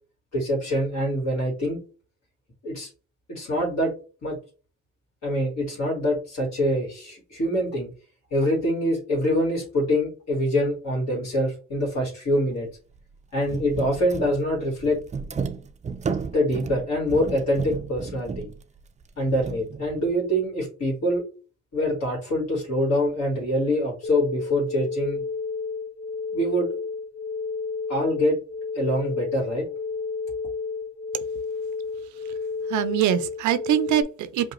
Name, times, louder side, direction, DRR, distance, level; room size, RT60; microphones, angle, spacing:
voice 1, 0.3-1.8 2.6-2.9 3.3-3.9 4.2-4.4 5.2-7.9 8.3-12.7 13.3-15.0 16.3-18.5 19.2-21.3 21.7-25.2 26.3-26.7 27.9-28.4 28.7-29.7, equal, 60° left, 1.9 m, -25 dB
sound 1, 12.5-12.7 12.9-13.0 13.4-20.1, right 5 dB, 25° right, 0.4 m, -33 dB
sound 2, 24.0-34.0, left 4 dB, 85° left, 0.7 m, -31 dB
voice 2, 32.7-34.5, right 10 dB, 75° right, 0.5 m, -23 dB
5.1 x 2.3 x 3.0 m
cardioid pair, 90°, 30 cm